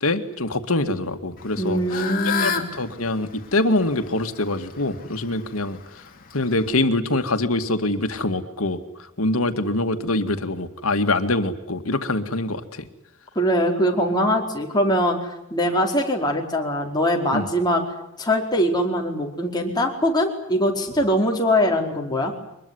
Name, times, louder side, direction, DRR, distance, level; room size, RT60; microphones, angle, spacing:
voice 1, 0.0-1.8 2.4-5.8 6.3-8.8 9.2-12.8 17.3-17.5, left 2 dB, 85° left, 8 dB, 2.2 m, -24 dB
Fowl / Bird, 1.4-6.7, left 5 dB, 40° left, 3.2 m, -32 dB
voice 2, 1.6-2.6 13.3-17.8 18.2-22.3, equal, 20° left, 0 dB, 4.7 m, -22 dB
24.0 x 21.5 x 9.9 m, 0.84 s
head